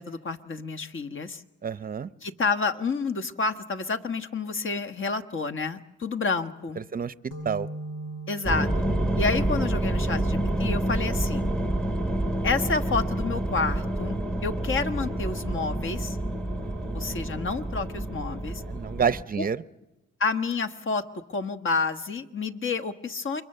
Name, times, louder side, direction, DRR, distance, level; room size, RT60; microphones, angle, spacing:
voice 1, 0.0-1.4 2.2-6.8 8.3-8.7 9.2-11.5 12.4-16.2 16.9-18.6 19.4-19.5 20.2-21.0 21.3-23.4, left 4 dB, 40° left, 8 dB, 1.5 m, -29 dB
voice 2, 1.6-2.1 6.8-7.1 7.4-7.7 16.5-17.4 18.7-19.6, right 6 dB, 30° right, 15 dB, 0.8 m, -30 dB
sound 1, 7.3-14.6, right 1 dB, 90° left, 7.1 m, -42 dB
sound 2, 8.4-19.2, right 1 dB, 5° left, 1.1 m, -28 dB
29.0 x 23.5 x 6.8 m, 0.99 s
cardioid pair, 90°, 30 cm